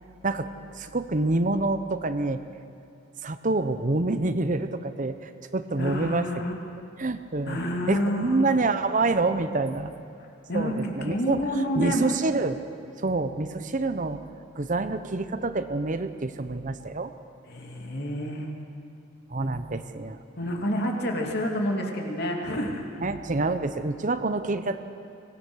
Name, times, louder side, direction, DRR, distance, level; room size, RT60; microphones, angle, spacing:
voice 1, 0.7-2.4 3.2-6.3 7.0-7.6 7.9-9.9 10.5-11.4 11.7-12.6 13.0-14.2 14.6-17.1 19.3-20.2 23.0-24.8, right 2 dB, 40° right, 10 dB, 0.8 m, -27 dB
voice 2, 5.8-6.5 7.4-8.5 10.5-12.3 17.5-18.5 20.4-22.8, equal, 55° left, 1 dB, 2.7 m, -29 dB
23.5 x 19.0 x 6.4 m, 2.5 s
head